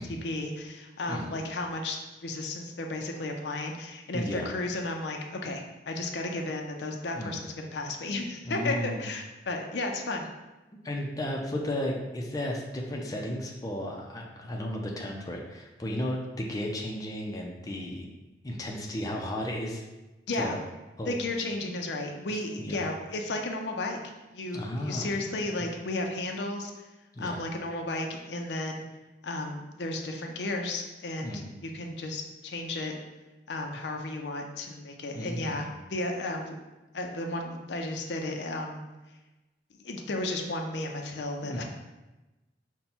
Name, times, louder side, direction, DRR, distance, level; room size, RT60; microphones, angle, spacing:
voice 1, 0.2-10.2 20.3-20.6 21.1-24.0 24.3-26.7 27.2-28.8 29.2-33.0 33.5-36.6 36.9-38.8 39.8-41.6, left 2 dB, 70° left, 2 dB, 0.6 m, -33 dB
voice 2, 1.0-1.4 4.1-4.5 7.2-7.4 8.4-9.1 10.8-18.1 18.4-19.8 20.3-20.6 21.0-21.1 22.3-22.8 24.5-25.2 27.1-27.4 31.2-31.6 35.1-35.8 41.4-41.6, left 1 dB, 20° left, -1 dB, 0.5 m, -34 dB
5.4 x 2.2 x 4.3 m, 1.1 s
head